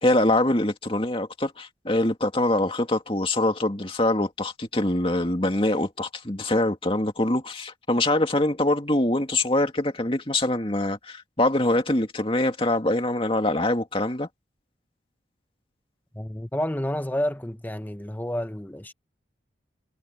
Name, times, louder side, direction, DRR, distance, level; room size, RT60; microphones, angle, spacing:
voice 1, 0.0-14.3, left 1 dB, 30° left, 2.4 m, -24 dB
voice 2, 16.1-18.9, equal, 10° left, 0.9 m, -29 dB
head